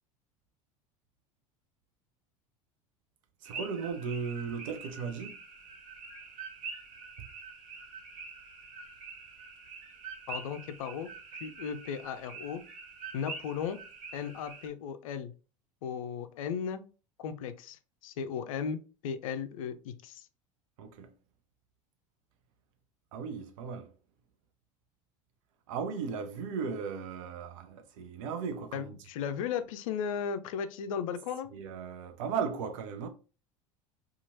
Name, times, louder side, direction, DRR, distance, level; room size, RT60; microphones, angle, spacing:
sound 1, 3.4-14.7, right 4 dB, 45° right, 1.0 m, -45 dB
voice 1, 3.4-5.4 20.8-21.1 23.1-23.9 25.7-28.9 31.5-33.1, right 6 dB, 70° right, 0.7 m, -36 dB
voice 2, 10.3-12.6 13.1-13.8 14.1-15.3 15.8-16.8 17.2-20.3 28.7-31.5, left 7 dB, 75° left, 0.4 m, -36 dB
2.9 x 2.4 x 2.7 m
hypercardioid pair, 75°, 18 cm